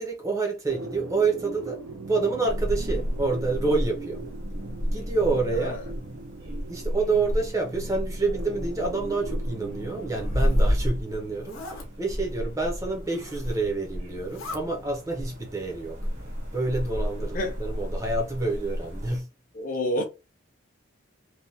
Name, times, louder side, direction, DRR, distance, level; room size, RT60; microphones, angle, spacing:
voice 1, 0.0-4.2 4.9-5.8 6.7-16.1 16.5-19.3, right 3 dB, 15° right, 0.5 m, -28 dB
sound 1, 0.7-14.9, right 3 dB, 85° right, 0.6 m, -41 dB
sound 2, 2.5-19.2, equal, 70° right, 1.1 m, -31 dB
voice 2, 5.5-5.8 17.3-17.6 19.5-20.1, left 1 dB, 40° left, 0.5 m, -28 dB
Zipper (clothing), 10.0-10.7 11.3-11.9 13.0-13.7 14.1-14.6, left 2 dB, 85° left, 0.7 m, -42 dB
3.1 x 2.1 x 2.7 m
head